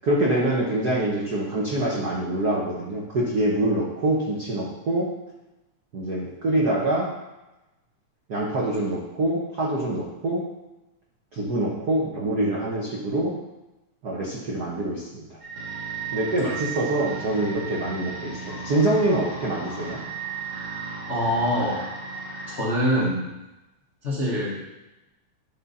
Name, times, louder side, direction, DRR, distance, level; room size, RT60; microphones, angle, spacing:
voice 1, 0.0-5.1 5.9-7.1 8.3-10.4 11.3-13.3 14.0-15.3 16.1-20.0, right 1 dB, 80° right, -4 dB, 0.8 m, -25 dB
sound 1, 15.4-22.6, right 5 dB, 55° right, 2.3 m, -35 dB
voice 2, 21.1-21.8 22.5-23.3 24.0-24.8, equal, 75° left, -6 dB, 0.6 m, -24 dB
10.0 x 3.7 x 4.1 m, 1.0 s
omnidirectional pair, 3.3 m